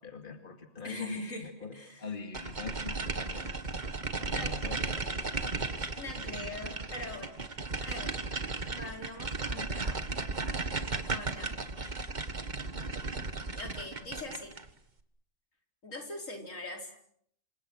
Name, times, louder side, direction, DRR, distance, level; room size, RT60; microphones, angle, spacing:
voice 1, 0.0-3.6 4.1-5.3 6.0-6.3 14.0-14.2, left 4 dB, 40° left, 5 dB, 2.4 m, -44 dB
voice 2, 0.8-2.0 4.3-4.8 5.9-7.4 7.8-8.3 8.6-10.0 11.1-12.1 13.5-14.5 15.8-16.9, left 2 dB, 80° left, 2 dB, 4.9 m, -42 dB
sound 1, 2.3-14.7, right 3 dB, 35° right, 1.7 m, -35 dB
28.0 x 26.5 x 6.3 m, 0.67 s
omnidirectional pair, 1.3 m